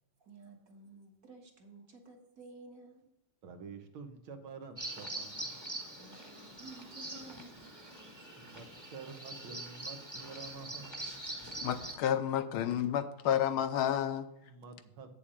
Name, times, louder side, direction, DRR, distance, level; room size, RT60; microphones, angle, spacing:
voice 1, 0.2-3.1 6.0-8.1, right 3 dB, 45° right, 2 dB, 1.6 m, -53 dB
voice 2, 3.4-5.6 8.4-11.2 14.4-15.2, right 5 dB, 70° right, 6 dB, 1.9 m, -49 dB
Bird vocalization bird call bird song, 4.8-11.9, right 2 dB, 10° right, 1.1 m, -44 dB
voice 3, 11.6-14.3, left 10 dB, 80° left, 10 dB, 1.5 m, -30 dB
8.6 x 7.2 x 5.0 m, 0.85 s
omnidirectional pair, 2.4 m